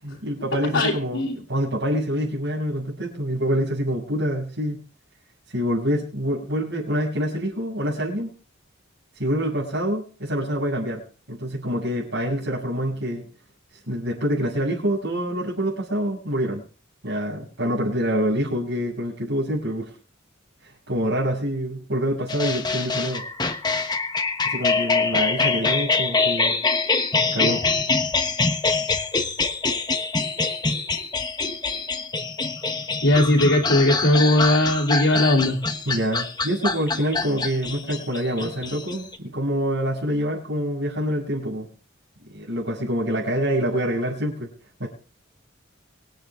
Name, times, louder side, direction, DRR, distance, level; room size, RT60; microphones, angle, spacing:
voice 1, 0.0-4.8 5.5-8.3 9.2-11.0 11.3-13.2 13.9-16.6 17.0-19.9 20.9-23.2 24.4-26.6 27.3-27.6 35.8-41.7 42.3-44.5 44.8-44.9, equal, 70° right, -6 dB, 6.6 m, -26 dB
voice 2, 0.7-1.4 33.0-35.6, left 1 dB, 70° left, -4 dB, 3.1 m, -19 dB
sound 1, 22.3-39.2, left 4 dB, 20° left, 1.2 m, -25 dB
25.5 x 9.0 x 3.7 m, 0.40 s
head